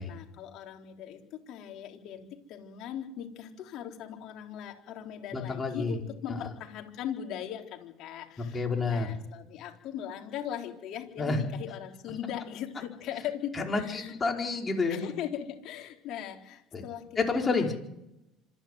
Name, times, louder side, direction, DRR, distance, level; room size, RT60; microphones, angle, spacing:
voice 1, 0.0-14.1 14.9-17.7, left 10 dB, 65° left, 3 dB, 3.9 m, -39 dB
voice 2, 5.3-6.0 8.5-9.1 11.2-11.4 13.5-15.0 16.7-16.8 17.2-17.7, left 3 dB, 25° left, 1 dB, 5.1 m, -29 dB
26.0 x 10.5 x 9.4 m, 0.86 s
supercardioid pair, 95°, 0 cm